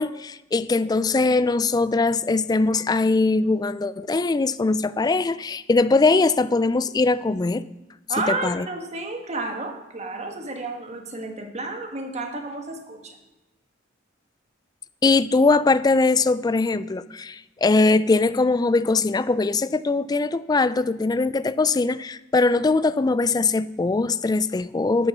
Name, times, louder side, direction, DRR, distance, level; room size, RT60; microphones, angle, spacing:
voice 1, 0.0-7.6 8.2-8.7 15.0-25.1, left 3 dB, 20° left, 15 dB, 0.3 m, -21 dB
voice 2, 8.1-13.2, right 3 dB, 35° right, 4 dB, 1.4 m, -31 dB
12.5 x 6.6 x 6.1 m, 1.0 s
head